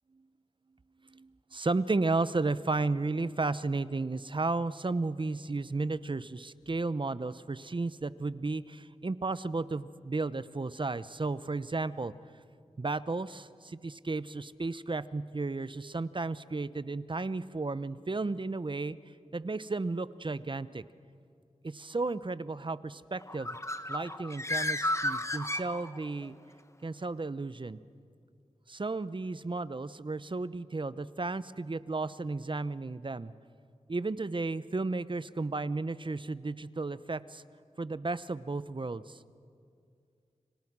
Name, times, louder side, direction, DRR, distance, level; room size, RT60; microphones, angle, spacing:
voice 1, 1.1-12.1 12.8-19.0 19.3-20.8 21.6-23.6 23.9-26.3 26.8-27.8 28.7-33.3 33.9-37.4 37.8-39.2, right 3 dB, 40° right, 15 dB, 0.9 m, -33 dB
Bird, 23.2-26.3, left 1 dB, 20° left, 1.4 m, -33 dB
29.5 x 25.5 x 6.2 m, 2.3 s
cardioid pair, 45°, 13 cm